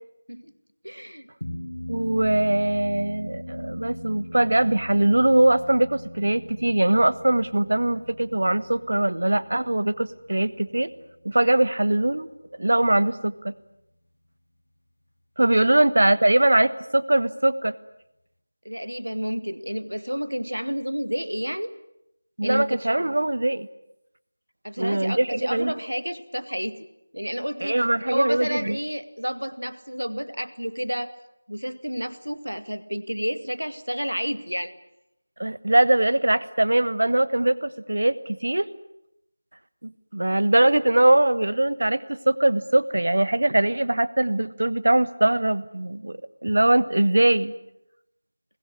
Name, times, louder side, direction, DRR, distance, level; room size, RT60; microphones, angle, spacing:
voice 1, 0.8-1.3 15.6-15.8 18.6-21.8 22.4-22.9 24.6-26.8 27.1-31.1 31.5-34.7, equal, 90° right, 12 dB, 2.1 m, -30 dB
sound 1, 1.4-12.1, left 1 dB, 65° left, 3.0 m, -40 dB
voice 2, 1.9-10.9 11.2-12.3 12.6-13.5 15.4-17.7 22.4-23.7 24.8-25.7 27.6-28.8 35.4-38.7 39.8-47.5, right 1 dB, 60° right, 16 dB, 1.4 m, -21 dB
24.5 x 21.0 x 9.8 m, 0.83 s
figure-of-eight pair, 170°, 0 cm